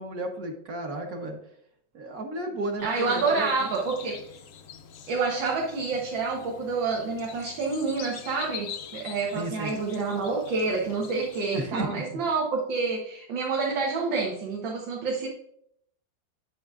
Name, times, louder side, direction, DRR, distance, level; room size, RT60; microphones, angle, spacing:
voice 1, 0.0-1.4 1.9-3.7 9.3-9.8 11.5-12.3, right 2 dB, 55° right, 2 dB, 1.4 m, -33 dB
sound 1, 2.8-11.6, left 8 dB, 75° left, 0.7 m, -44 dB
voice 2, 2.8-4.3 5.1-15.3, right 4 dB, 80° right, -2 dB, 1.9 m, -28 dB
7.8 x 7.7 x 2.4 m, 0.70 s
omnidirectional pair, 2.1 m